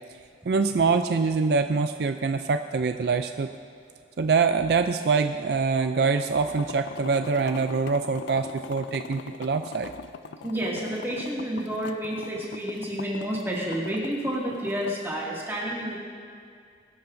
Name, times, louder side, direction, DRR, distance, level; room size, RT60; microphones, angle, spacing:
voice 1, 0.5-3.5 4.2-9.9, right 4 dB, 60° right, 8 dB, 0.4 m, -24 dB
sound 1, 6.5-15.0, left 5 dB, 75° left, 0.4 m, -41 dB
voice 2, 10.4-16.0, equal, 15° right, -5 dB, 2.2 m, -30 dB
21.0 x 12.5 x 2.6 m, 2.3 s
head